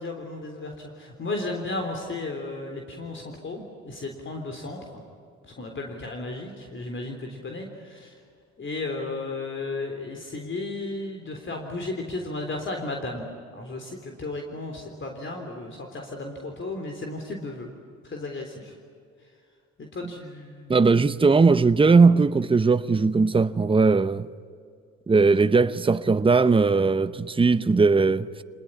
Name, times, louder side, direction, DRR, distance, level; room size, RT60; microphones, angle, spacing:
voice 1, 0.0-5.0 5.4-8.2 8.6-13.2 13.5-17.7 18.0-18.7 19.2-19.3 19.8-20.8, left 2 dB, 40° left, 3.6 m, -34 dB
voice 2, 20.7-24.3 25.1-28.4, right 4 dB, 15° right, 0.8 m, -19 dB
26.5 x 20.0 x 9.9 m
cardioid pair, 90°, 30 cm